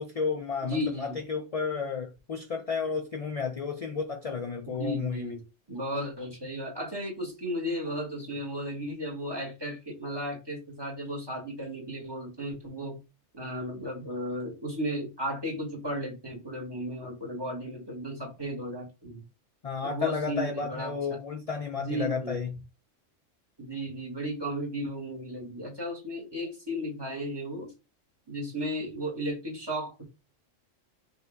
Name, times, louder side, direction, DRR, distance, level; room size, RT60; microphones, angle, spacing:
voice 1, 0.0-5.4 19.6-22.6, left 5 dB, 55° left, 0.4 m, -32 dB
voice 2, 0.6-1.2 4.7-5.4 5.7-13.0 13.3-19.2 19.8-21.2 21.8-22.4 23.6-27.7 28.3-30.0, equal, 20° right, 1.5 m, -35 dB
5.4 x 2.7 x 3.5 m
omnidirectional pair, 1.3 m